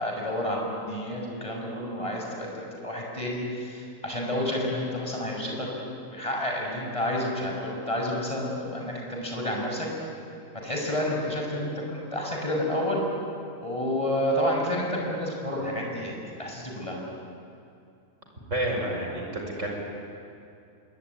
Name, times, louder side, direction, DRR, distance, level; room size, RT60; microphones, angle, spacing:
voice 1, 0.0-5.7 6.1-9.9 10.6-13.0 13.6-17.0, left 1 dB, 20° left, -1 dB, 6.3 m, -30 dB
voice 2, 18.5-19.7, right 1 dB, 50° right, 0 dB, 6.1 m, -29 dB
26.5 x 22.5 x 9.8 m, 2.6 s
omnidirectional pair, 1.7 m